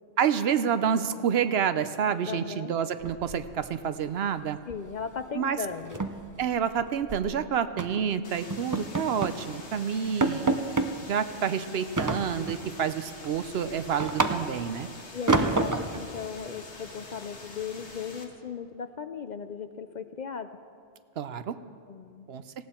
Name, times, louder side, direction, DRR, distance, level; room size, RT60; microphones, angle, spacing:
voice 1, 0.2-4.6 5.4-5.6 6.4-10.6 11.0-14.9 21.2-21.5 22.3-22.4, right 7 dB, 70° right, 12 dB, 0.9 m, -28 dB
voice 2, 2.3-2.7 4.7-6.0 9.8-9.9 15.1-20.6 21.9-22.3, left 6 dB, 50° left, 10 dB, 0.6 m, -37 dB
sound 1, 3.0-3.9 4.1-4.4 4.7-4.9 5.2-5.3 5.7-7.3 7.8-8.0 8.5-9.4 9.8-9.9 10.2-10.9 12.0-12.7 13.1-14.7 15.3-16.0, right 3 dB, 20° right, 0.5 m, -28 dB
sound 2, 8.2-18.2, left 3 dB, 85° left, 2.0 m, -46 dB
19.0 x 16.5 x 4.4 m, 2.2 s
omnidirectional pair, 1.1 m